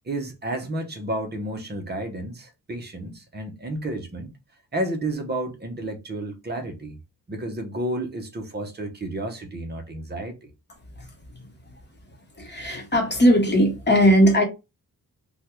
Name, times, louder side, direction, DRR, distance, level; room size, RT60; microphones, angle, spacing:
voice 1, 0.0-4.3 4.7-7.0 7.3-10.5, right 1 dB, 25° right, 0.8 m, -31 dB
voice 2, 12.4-14.4, equal, 30° left, 0.9 m, -18 dB
3.5 x 2.2 x 3.0 m
wide cardioid pair, 150°, 36 cm